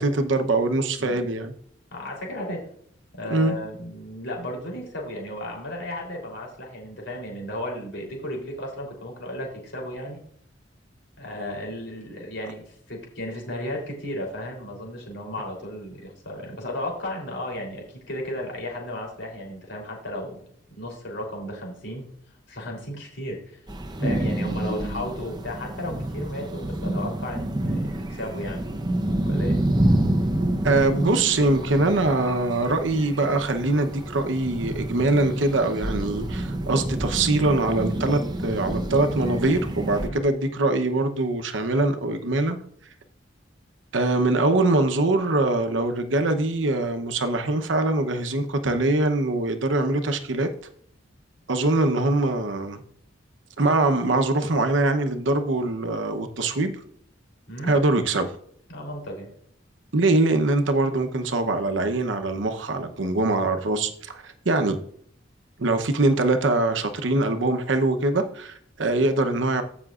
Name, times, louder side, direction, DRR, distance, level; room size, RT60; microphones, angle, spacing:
voice 1, 0.0-1.5 3.3-3.6 30.6-42.6 43.9-50.5 51.5-52.8 53.6-56.7 57.7-58.3 59.9-64.8 65.6-69.6, right 2 dB, 80° right, 0.9 m, -23 dB
voice 2, 1.0-1.3 1.9-2.6 3.1-10.2 11.2-20.4 20.7-22.1 22.5-23.6 24.0-28.6 29.2-29.6 31.7-31.9 40.0-40.2 57.5-57.7 58.7-59.3, left 1 dB, 70° left, 3.5 m, -34 dB
sound 1, 23.7-40.1, right 1 dB, 20° right, 0.8 m, -28 dB
15.5 x 6.0 x 2.5 m
head